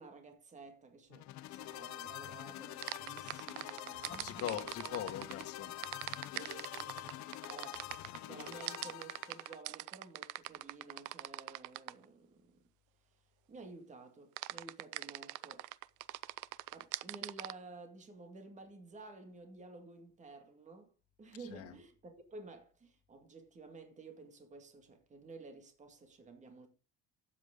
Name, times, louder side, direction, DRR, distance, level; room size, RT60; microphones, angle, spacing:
voice 1, 0.0-4.5 4.9-5.1 6.3-7.8 8.2-12.6 13.5-15.7 16.7-20.9 21.2-26.7, right 3 dB, 25° right, 2.0 m, -53 dB
sound 1, 1.1-9.6, left 14 dB, 70° left, 0.8 m, -46 dB
sound 2, 2.8-5.4 5.8-12.0 14.4-17.5, right 19 dB, 85° right, 0.6 m, -42 dB
voice 2, 4.2-5.9 6.2-7.2 21.4-21.8, left 10 dB, 50° left, 1.7 m, -43 dB
12.5 x 8.5 x 3.7 m
cardioid pair, 165°, 30 cm